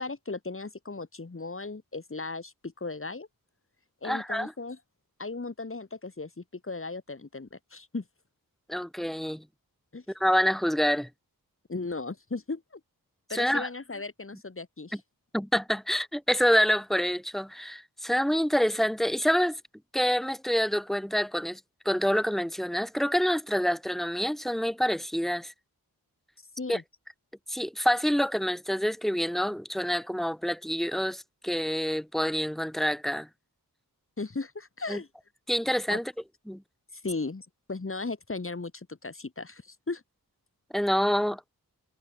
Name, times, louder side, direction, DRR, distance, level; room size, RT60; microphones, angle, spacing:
voice 1, 0.0-3.3 4.0-4.8 5.2-8.0 9.9-10.0 11.7-12.8 13.3-15.0 26.5-26.8 34.2-35.1 35.9-36.0 36.9-40.0, left 3 dB, 35° left, 5.7 m, -36 dB
voice 2, 4.0-4.5 8.7-9.4 10.2-11.1 13.3-13.7 15.3-19.6 19.9-21.6 21.9-25.5 26.7-26.8 27.5-33.3 34.9-35.0 35.5-36.0 36.5-36.6 40.7-41.4, equal, ahead, 5.6 m, -27 dB
wide cardioid pair, 125°, 36 cm